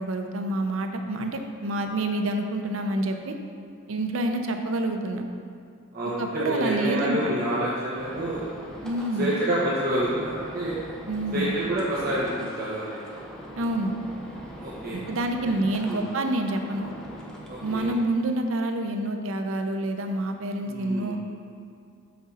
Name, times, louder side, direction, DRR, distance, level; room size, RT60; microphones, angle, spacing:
voice 1, 0.0-3.3 3.9-5.3 6.2-7.2 8.8-9.4 11.1-11.6 13.6-13.9 14.9-16.9 17.6-21.2, right 1 dB, 70° right, 5 dB, 0.6 m, -27 dB
voice 2, 5.9-8.4 9.2-10.7 11.3-13.0 14.6-15.0 15.9-16.0 17.5-17.9 20.6-21.2, right 1 dB, 45° right, -8 dB, 1.0 m, -28 dB
sound 1, 8.0-18.0, equal, 5° left, 0.7 m, -42 dB
6.2 x 6.0 x 4.2 m, 2.4 s
head